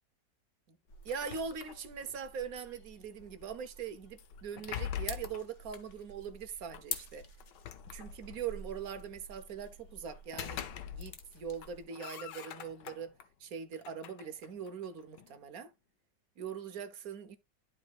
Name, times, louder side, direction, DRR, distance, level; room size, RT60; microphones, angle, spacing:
sound 1, 0.9-11.8, left 4 dB, 50° left, 1.2 m, -48 dB
voice 1, 1.0-7.2 7.9-13.1 13.4-15.7 16.4-17.4, right 7 dB, 60° right, 1.3 m, -42 dB
sound 2, 1.1-2.2 4.2-5.5 6.7-6.8 7.4-8.5 10.1-11.3 11.6-13.3 13.7-15.4, left 9 dB, 80° left, 1.4 m, -44 dB
11.5 x 4.8 x 2.4 m
omnidirectional pair, 1.9 m